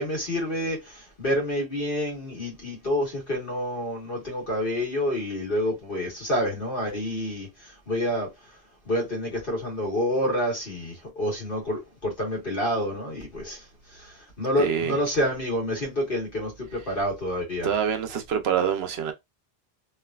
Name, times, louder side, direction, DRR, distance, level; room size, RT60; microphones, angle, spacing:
voice 1, 0.0-8.6 8.8-17.7, equal, 55° left, 1.6 m, -28 dB
voice 2, 14.6-15.0 17.6-19.1, right 8 dB, 75° right, 0.9 m, -25 dB
3.1 x 2.5 x 2.3 m
omnidirectional pair, 1.1 m